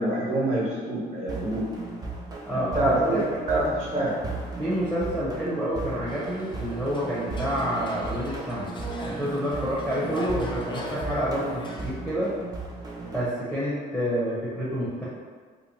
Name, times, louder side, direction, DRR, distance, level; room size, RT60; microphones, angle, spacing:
voice 1, 0.0-1.6 2.5-4.1, right 1 dB, 40° right, -6 dB, 1.4 m, -26 dB
sound 1, 1.3-13.3, right 3 dB, 25° right, 0.5 m, -37 dB
voice 2, 2.5-3.2 4.6-8.7 9.0-12.3 13.1-15.0, equal, ahead, -9 dB, 0.8 m, -28 dB
sound 2, 6.1-11.9, equal, 30° left, 0.5 m, -39 dB
2.9 x 2.2 x 4.1 m, 1.5 s
cardioid pair, 110°, 17 cm